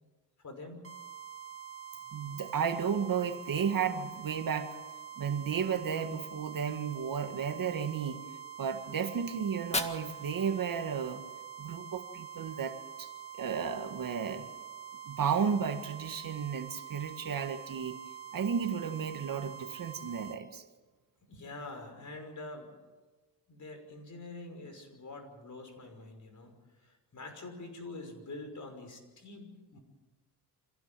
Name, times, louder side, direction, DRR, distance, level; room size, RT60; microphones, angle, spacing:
voice 1, 0.4-0.9 21.3-22.7 23.5-26.5 26.8-29.8, left 2 dB, 45° left, 5 dB, 5.8 m, -45 dB
sound 1, 0.8-20.4, right 8 dB, 35° right, 2.8 m, -46 dB
voice 2, 2.1-4.8 5.2-8.2 8.6-11.2 11.6-13.1 13.3-14.5 15.1-18.0 18.3-20.6, right 7 dB, 55° right, 7 dB, 1.8 m, -33 dB
Fire, 9.4-11.4, left 2 dB, 15° left, 1.8 m, -39 dB
25.5 x 16.0 x 7.6 m, 1.2 s
cardioid pair, 95°, 41 cm